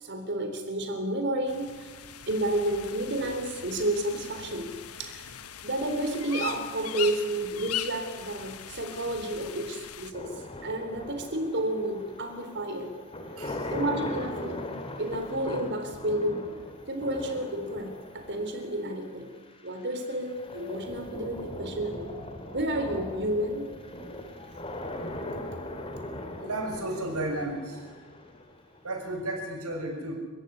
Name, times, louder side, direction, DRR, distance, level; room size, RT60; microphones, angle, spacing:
voice 1, 0.0-1.9 2.3-4.7 5.0-5.3 5.6-10.3 10.6-12.9 13.7-14.6 15.0-16.4 16.9-19.3 19.6-22.2 22.5-23.7, right 1 dB, 50° right, 6 dB, 3.7 m, -31 dB
sound 1, 1.5-10.1, left 10 dB, 80° left, 1.4 m, -40 dB
sound 2, 10.1-29.2, left 1 dB, 25° left, 3.0 m, -40 dB
voice 2, 13.4-13.7 26.4-28.0 28.8-30.1, right 1 dB, 85° right, 3 dB, 6.7 m, -33 dB
29.5 x 16.0 x 9.9 m, 1.4 s
head